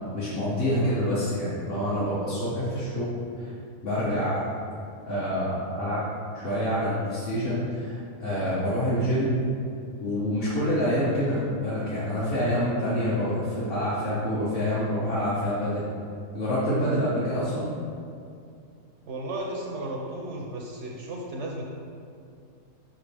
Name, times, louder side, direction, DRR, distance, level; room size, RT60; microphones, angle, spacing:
voice 1, 0.0-3.5 3.8-4.5 5.1-6.0 6.3-9.4 10.0-15.8 16.3-17.7, equal, 45° left, -9 dB, 1.1 m, -27 dB
voice 2, 19.1-21.6, right 1 dB, 65° right, -1 dB, 0.8 m, -34 dB
5.6 x 5.0 x 3.4 m, 2.4 s
omnidirectional pair, 1.5 m